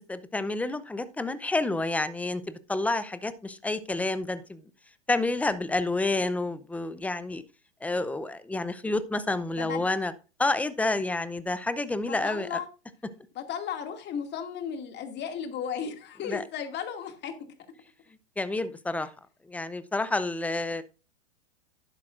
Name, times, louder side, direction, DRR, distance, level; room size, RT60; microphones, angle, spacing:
voice 1, 0.1-4.6 5.1-7.4 7.8-10.1 10.4-12.5 16.3-16.4 18.4-19.1 19.5-20.8, left 2 dB, 5° left, 14 dB, 0.6 m, -29 dB
voice 2, 12.1-12.7 13.3-17.3, left 7 dB, 30° left, 6 dB, 2.3 m, -35 dB
11.5 x 10.5 x 2.5 m, 0.33 s
hypercardioid pair, 115°, 35 cm